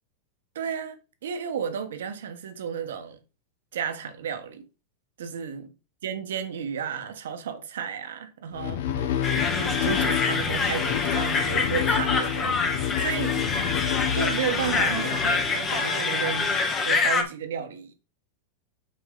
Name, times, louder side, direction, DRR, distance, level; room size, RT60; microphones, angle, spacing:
voice 1, 0.5-3.2 3.7-4.6 5.2-5.7 6.0-13.4 14.1-17.9, right 7 dB, 85° right, 1.2 m, -33 dB
sound 1, 8.5-16.0, left 10 dB, 70° left, 0.9 m, -29 dB
sound 2, 9.2-17.2, left 4 dB, 25° left, 1.2 m, -26 dB
6.8 x 4.3 x 3.9 m
supercardioid pair, 145°, 0 cm